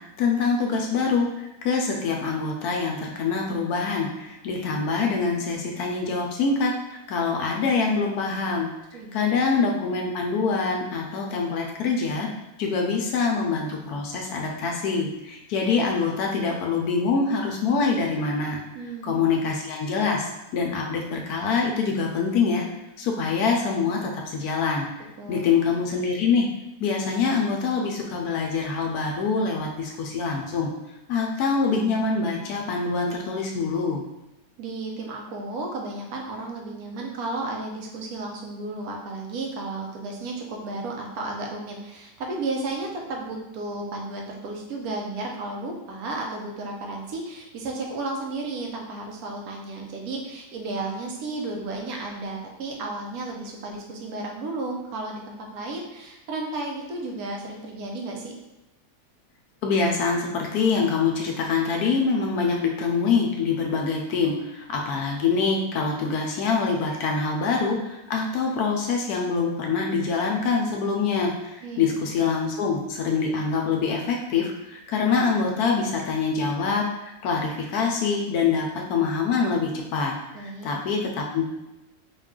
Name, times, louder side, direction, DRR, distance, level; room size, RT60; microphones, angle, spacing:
voice 1, 0.2-8.7 9.1-12.3 12.6-18.6 19.0-22.6 23.0-24.9 25.3-26.5 26.8-30.7 31.1-34.0 59.6-81.4, left 4 dB, 75° left, 1 dB, 1.1 m, -25 dB
voice 2, 8.9-9.4 18.7-19.2 25.2-25.5 34.6-58.3 71.6-72.0 80.3-80.7, right 2 dB, 70° right, 0 dB, 1.2 m, -33 dB
3.9 x 2.3 x 3.6 m, 0.97 s
omnidirectional pair, 1.7 m